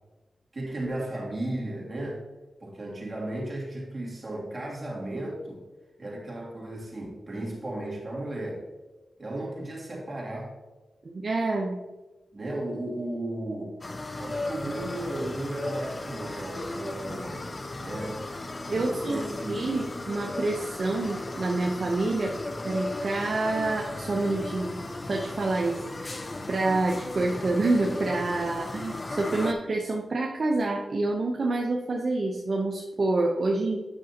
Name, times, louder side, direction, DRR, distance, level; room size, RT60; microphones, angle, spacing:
voice 1, 0.5-2.2 2.6-5.6 6.0-8.6 9.2-10.5 12.3-13.8 14.2-18.2 18.7-19.8, right 1 dB, 40° right, -2 dB, 2.7 m, -35 dB
voice 2, 11.0-11.8 18.7-19.2 19.5-22.3 22.6-24.8 25.0-26.2 26.5-33.8, right 2 dB, 60° right, 0 dB, 0.9 m, -27 dB
sound 1, 13.8-29.5, left 2 dB, 40° left, 0.6 m, -36 dB
9.0 x 6.2 x 2.9 m, 1.1 s
cardioid pair, 50°, 0 cm